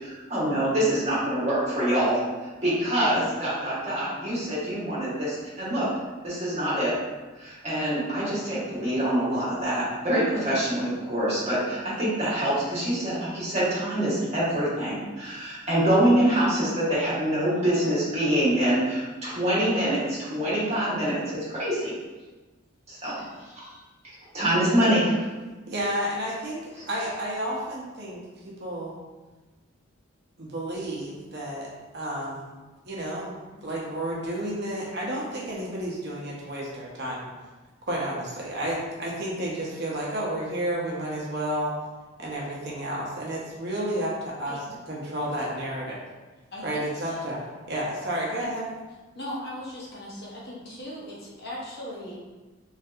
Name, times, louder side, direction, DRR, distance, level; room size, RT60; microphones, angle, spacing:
voice 1, 0.0-5.9 6.2-6.9 7.3-21.9 22.9-23.7 24.0-25.2 26.8-26.9, right 1 dB, 30° right, -9 dB, 1.1 m, -25 dB
voice 2, 25.7-29.0 30.4-31.7 31.9-32.5 32.8-37.3 37.9-41.7 42.2-46.0 46.6-48.7, right 1 dB, 55° right, -5 dB, 0.7 m, -31 dB
voice 3, 46.5-47.2 49.1-52.2, left 1 dB, 50° left, -5 dB, 0.8 m, -38 dB
3.2 x 2.7 x 2.4 m, 1.2 s
head